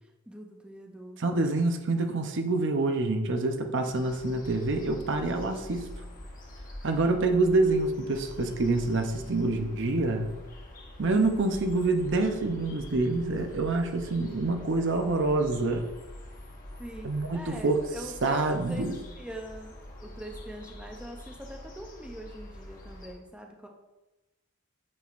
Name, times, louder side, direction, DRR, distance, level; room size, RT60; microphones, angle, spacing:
voice 1, 0.3-1.2 9.2-9.3 16.8-19.7 20.0-23.7, right 1 dB, 5° right, 1 dB, 0.6 m, -43 dB
voice 2, 1.2-5.9 6.8-10.3 11.0-15.9 17.0-17.8 18.2-19.0, right 2 dB, 60° right, 5 dB, 0.7 m, -26 dB
sound 1, 3.9-23.1, left 1 dB, 40° left, 1.2 m, -45 dB
8.7 x 6.0 x 2.5 m, 1.1 s
head